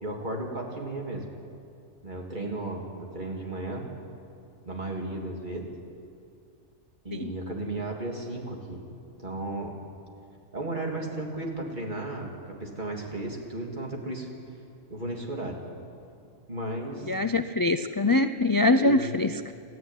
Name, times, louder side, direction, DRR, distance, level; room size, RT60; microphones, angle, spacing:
voice 1, 0.0-1.2 2.0-3.9 4.6-5.7 7.0-8.9 9.2-9.8 10.5-14.3 14.9-15.6 16.5-17.1 18.8-19.1, right 2 dB, 35° right, 0 dB, 3.3 m, -34 dB
voice 2, 17.1-19.5, left 2 dB, 35° left, 9 dB, 0.3 m, -24 dB
29.0 x 14.0 x 9.4 m, 2.5 s
omnidirectional pair, 1.3 m